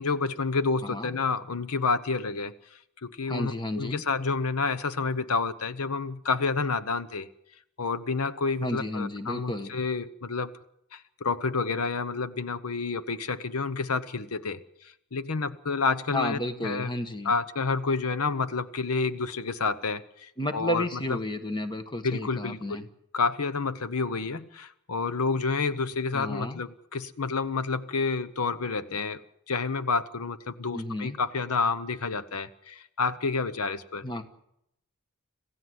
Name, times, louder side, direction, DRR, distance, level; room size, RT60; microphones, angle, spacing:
voice 1, 0.0-2.5 3.0-7.3 7.8-10.5 10.9-14.6 15.1-16.9 17.2-21.2 22.0-22.8 23.1-29.2 29.5-34.0, left 4 dB, 80° left, 13 dB, 0.9 m, -29 dB
voice 2, 0.8-1.2 3.3-4.0 8.6-9.7 16.1-17.3 20.4-22.8 26.1-26.6 30.7-31.2 34.0-34.2, left 1 dB, 20° left, 9 dB, 1.4 m, -32 dB
26.5 x 15.5 x 8.0 m, 0.80 s
head